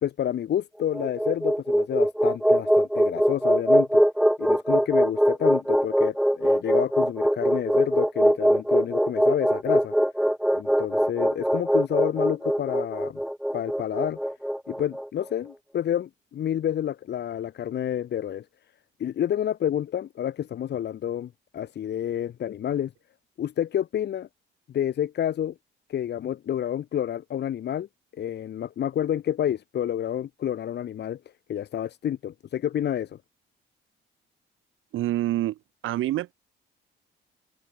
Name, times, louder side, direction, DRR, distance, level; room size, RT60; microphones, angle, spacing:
voice 1, 0.0-4.0 4.4-9.9 10.5-13.2 13.5-14.2 14.7-18.4 19.0-22.9 23.4-24.3 24.7-25.5 25.9-27.9 28.2-31.2 31.5-33.2, left 10 dB, 60° left, 1.1 m, -29 dB
sound 1, 0.8-15.1, equal, ahead, 1.3 m, -22 dB
voice 2, 34.9-36.3, right 14 dB, 85° right, 5.5 m, -27 dB
open air
cardioid pair, 90°, 20 cm